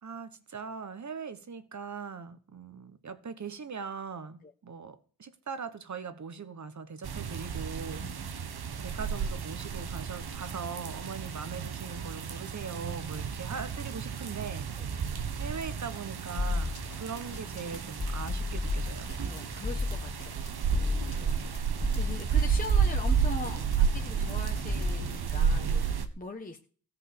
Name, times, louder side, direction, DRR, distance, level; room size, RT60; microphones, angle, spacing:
voice 1, 0.0-8.1 8.7-14.7 15.4-19.2, right 5 dB, 50° right, 1.3 m, -40 dB
sound 1, 7.0-26.1, right 7 dB, 85° right, 1.4 m, -32 dB
voice 2, 8.0-8.4 14.8-14.9 19.2-20.4 20.7-26.6, left 3 dB, 20° left, 1.2 m, -42 dB
sound 2, 16.4-25.1, left 3 dB, 50° left, 2.9 m, -34 dB
16.0 x 7.4 x 6.8 m
wide cardioid pair, 140°, 37 cm